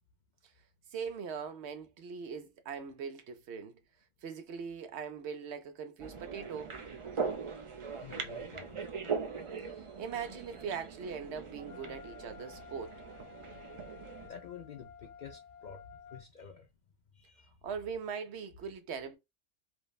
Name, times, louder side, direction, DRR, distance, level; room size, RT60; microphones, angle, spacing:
voice 1, 0.9-3.8 4.2-6.7 10.0-12.9 17.6-19.2, right 6 dB, 75° right, 0.9 m, -41 dB
sound 1, 6.0-14.3, right 5 dB, 50° right, 0.3 m, -40 dB
voice 2, 8.0-8.8 14.2-15.8 16.1-16.7 17.1-17.5, left 6 dB, 60° left, 0.5 m, -49 dB
Wind instrument woodwind instrument, 11.6-16.3, left 7 dB, 80° left, 0.9 m, -53 dB
3.2 x 2.0 x 2.2 m
omnidirectional pair, 1.2 m